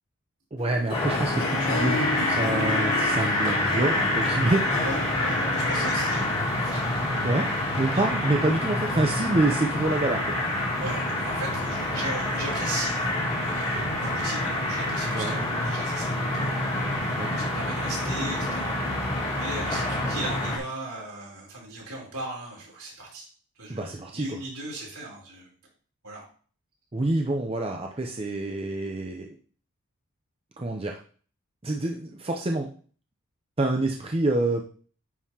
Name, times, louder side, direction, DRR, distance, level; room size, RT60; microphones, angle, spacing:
voice 1, 0.5-4.6 7.2-10.2 15.1-15.4 17.2-17.4 23.7-24.4 26.9-29.3 30.6-31.0 31.6-32.7 33.6-34.6, right 2 dB, 25° right, 1 dB, 0.6 m, -27 dB
Harp, 0.6-7.1, left 5 dB, 60° left, 0.4 m, -34 dB
sound 1, 0.9-20.6, left 1 dB, 25° left, 1.8 m, -27 dB
voice 2, 4.8-6.3 6.6-6.8 7.9-8.0 10.8-16.5 17.3-18.8 19.3-23.3 23.6-23.9 24.1-25.5 26.0-26.3, right 2 dB, 70° right, -3 dB, 3.8 m, -37 dB
9.4 x 5.6 x 2.8 m, 0.42 s
head